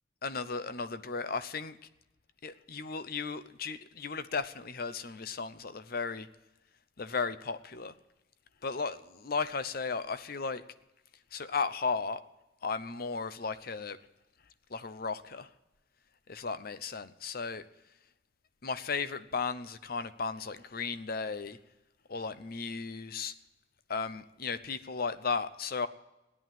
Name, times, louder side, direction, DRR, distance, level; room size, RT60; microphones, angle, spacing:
voice 1, 0.2-1.8 2.4-6.3 7.0-7.9 8.6-10.6 11.3-12.2 12.6-14.0 14.7-15.5 16.3-17.7 18.6-21.6 22.1-23.3 23.9-25.9, left 4 dB, 50° left, 13 dB, 0.7 m, -35 dB
15.5 x 11.0 x 7.5 m, 1.0 s
head